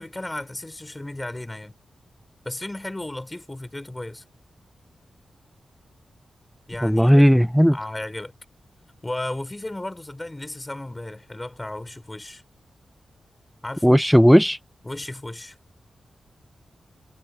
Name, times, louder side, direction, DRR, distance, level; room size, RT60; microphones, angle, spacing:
voice 1, 0.0-1.7 2.4-4.2 6.7-7.2 7.7-8.3 9.0-12.4 13.6-14.0 14.8-15.6, left 1 dB, 15° left, 4.7 m, -34 dB
voice 2, 6.8-7.8 13.8-14.6, equal, ahead, 0.6 m, -15 dB
cardioid pair, 70°, 0 cm